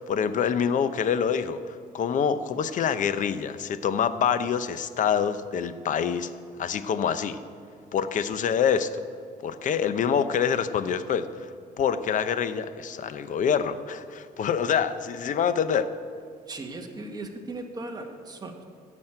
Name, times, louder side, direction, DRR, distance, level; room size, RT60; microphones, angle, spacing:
voice 1, 0.0-6.3 6.6-7.4 7.9-8.9 9.4-11.3 11.8-15.9, left 7 dB, 50° left, 12 dB, 0.8 m, -26 dB
voice 2, 16.5-18.6, right 2 dB, 25° right, 2 dB, 1.7 m, -37 dB
14.5 x 6.3 x 8.9 m, 2.3 s
cardioid pair, 110°, 17 cm